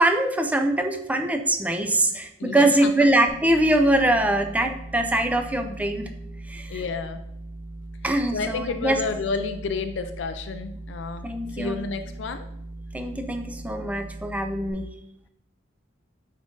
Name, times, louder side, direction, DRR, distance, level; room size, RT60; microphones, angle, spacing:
voice 1, 0.0-6.1 6.5-6.8 8.0-9.0 11.2-11.8 12.9-14.9, right 1 dB, 10° right, 6 dB, 0.5 m, -23 dB
voice 2, 2.4-2.9 6.7-7.2 8.3-12.5, left 4 dB, 65° left, 8 dB, 0.4 m, -31 dB
sound 1, 3.3-14.7, right 2 dB, 25° right, 0.8 m, -39 dB
8.9 x 3.7 x 3.8 m, 0.81 s
head